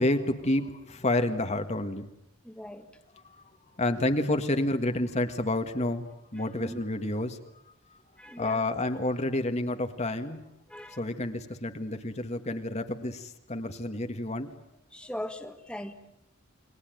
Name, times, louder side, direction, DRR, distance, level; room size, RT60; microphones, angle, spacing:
voice 1, 0.0-2.1 3.1-3.4 3.8-7.4 8.4-10.4 10.9-14.5, left 1 dB, 30° left, 6 dB, 1.7 m, -29 dB
voice 2, 2.4-2.9 6.6-6.8 8.2-8.6 10.7-11.0 14.9-15.9, left 1 dB, 5° left, 6 dB, 1.9 m, -39 dB
29.5 x 21.5 x 9.2 m, 0.76 s
head